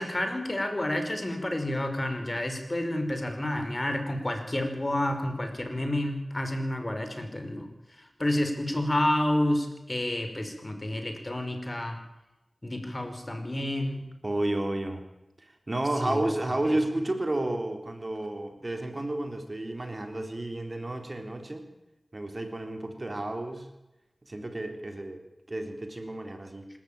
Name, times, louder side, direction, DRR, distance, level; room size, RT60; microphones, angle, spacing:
voice 1, 0.0-7.7 8.0-12.0 12.6-14.1 16.0-16.2 16.6-16.7, left 1 dB, 35° left, 6 dB, 5.3 m, -30 dB
voice 2, 14.2-15.0 15.4-21.6 22.1-23.7 24.2-26.7, right 1 dB, 45° right, 5 dB, 3.7 m, -31 dB
26.0 x 14.5 x 8.9 m, 0.95 s
cardioid pair, 40°, 0 cm